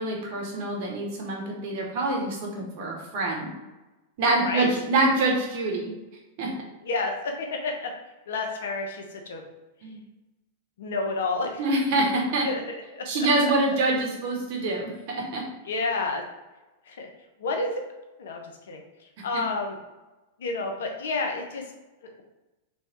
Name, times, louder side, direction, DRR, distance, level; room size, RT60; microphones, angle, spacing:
voice 1, 0.0-3.5 4.2-5.9 6.4-6.5 9.8-10.0 11.6-12.5 13.0-15.4 19.3-19.5, right 2 dB, 55° right, 0 dB, 1.4 m, -25 dB
voice 2, 6.8-7.9 8.3-9.4 10.8-11.6 12.4-12.8 13.1-13.5 15.6-16.2 16.9-17.1 17.4-17.7 18.2-18.8 19.2-19.8 20.4-21.6, left 3 dB, 75° left, 3 dB, 0.9 m, -30 dB
3.4 x 3.2 x 4.4 m, 1.1 s
hypercardioid pair, 110°, 0 cm